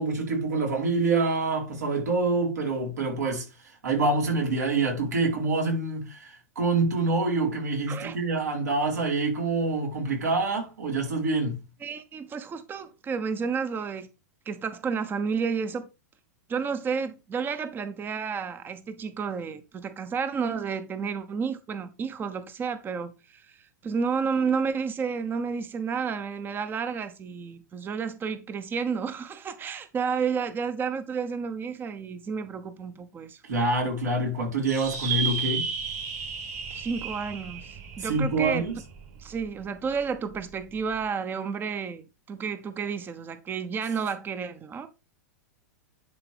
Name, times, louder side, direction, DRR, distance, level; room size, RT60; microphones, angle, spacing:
voice 1, 0.0-3.5 3.8-11.6 33.4-35.7 38.0-38.8, right 3 dB, 80° right, 4.3 m, -26 dB
voice 2, 11.8-14.1 14.5-15.9 16.5-33.4 36.7-38.6 39.2-44.9, right 6 dB, 25° right, 0.9 m, -31 dB
sound 1, 34.7-39.4, right 6 dB, 55° right, 4.3 m, -33 dB
10.5 x 4.9 x 3.5 m
hypercardioid pair, 100°, 9 cm